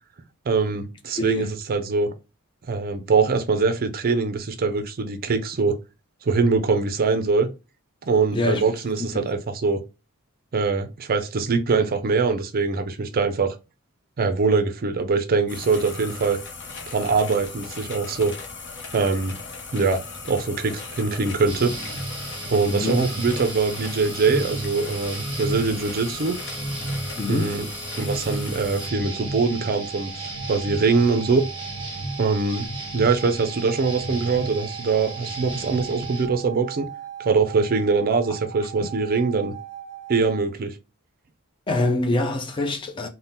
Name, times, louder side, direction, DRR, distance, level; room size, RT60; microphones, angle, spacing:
voice 1, 0.5-2.1 2.7-5.8 6.2-7.5 8.1-9.8 10.5-13.6 14.2-16.4 16.9-18.3 18.9-19.4 19.7-21.7 22.5-26.4 27.3-27.7 28.0-31.5 32.2-32.7 32.9-36.9 37.2-39.5 40.1-40.8, right 4 dB, 45° right, 0.4 m, -23 dB
voice 2, 1.2-1.5 8.3-8.7 22.7-23.1 27.2-27.6 38.8-38.9 41.7-43.1, left 2 dB, 20° left, 0.4 m, -25 dB
sound 1, 15.5-28.9, left 4 dB, 55° left, 0.7 m, -38 dB
sound 2, 21.5-36.3, right 1 dB, 25° right, 0.9 m, -33 dB
sound 3, 28.8-40.4, right 10 dB, 90° left, 0.8 m, -39 dB
2.7 x 2.1 x 3.3 m
head